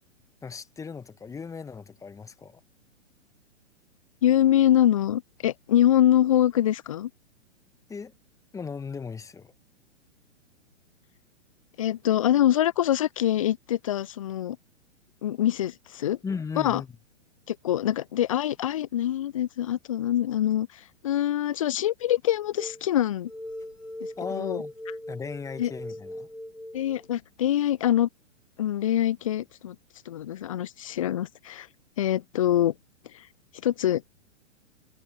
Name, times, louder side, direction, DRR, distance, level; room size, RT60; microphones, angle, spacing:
voice 1, 0.4-2.6 7.9-8.1 8.5-9.5 16.2-16.9 24.2-24.7 25.1-26.3, left 5 dB, 10° left, 1.5 m, -37 dB
voice 2, 4.2-7.1 11.8-14.6 15.2-16.2 16.6-16.8 17.5-23.3 24.3-24.6 25.6-25.7 26.7-28.1 28.6-29.8 30.1-31.7 32.0-32.7 33.1-33.2 33.6-34.1, left 12 dB, 30° left, 0.4 m, -24 dB
sound 1, 22.6-22.8 23.3-27.1, left 1 dB, 85° left, 4.1 m, -39 dB
figure-of-eight pair, 115°, 37 cm